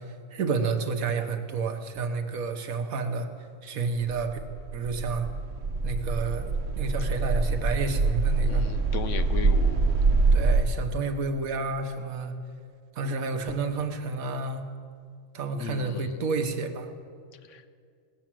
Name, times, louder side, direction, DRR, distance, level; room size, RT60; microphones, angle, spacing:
voice 1, 0.0-3.3 3.6-4.4 4.7-5.3 5.8-8.6 10.3-12.3 12.9-14.6 15.3-16.9, right 4 dB, 85° right, 6 dB, 1.4 m, -30 dB
sound 1, 4.0-10.6, right 3 dB, 65° right, 1.2 m, -25 dB
voice 2, 8.4-10.0 15.6-16.2 17.5-17.6, left 7 dB, 65° left, 11 dB, 1.0 m, -36 dB
18.5 x 7.2 x 7.5 m, 2.2 s
omnidirectional pair, 1.4 m